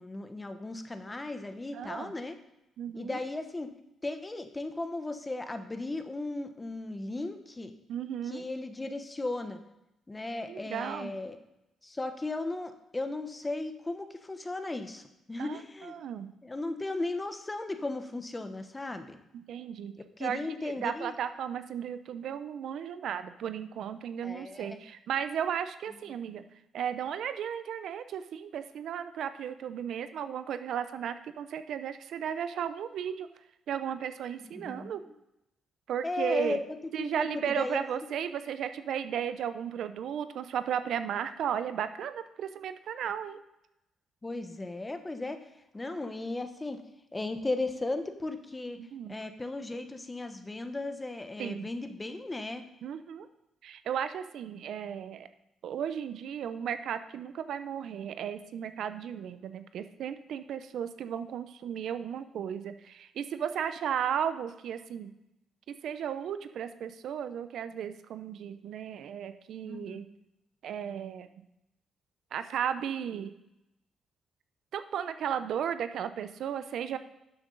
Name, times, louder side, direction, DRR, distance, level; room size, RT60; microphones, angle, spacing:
voice 1, 0.0-2.4 2.9-3.7 4.0-7.7 8.2-9.6 10.1-11.4 11.8-16.0 16.4-19.2 20.2-21.1 24.2-24.8 25.9-26.0 34.4-35.0 36.0-36.6 37.0-37.8 44.2-45.5 45.7-46.8 47.1-48.8 49.1-52.6 69.6-70.0, left 2 dB, 20° left, 8 dB, 1.1 m, -36 dB
voice 2, 1.7-2.2 2.8-3.2 7.9-8.4 10.5-11.1 15.4-16.3 19.3-26.4 26.7-33.3 33.7-35.0 35.9-36.6 36.9-43.4 48.8-49.1 51.4-51.7 52.8-53.3 53.6-55.3 55.6-65.1 65.7-70.1 70.6-71.3 72.3-73.3 74.7-77.0, right 8 dB, 70° right, 11 dB, 0.6 m, -35 dB
12.0 x 7.3 x 4.0 m, 0.87 s
cardioid pair, 90°, 0 cm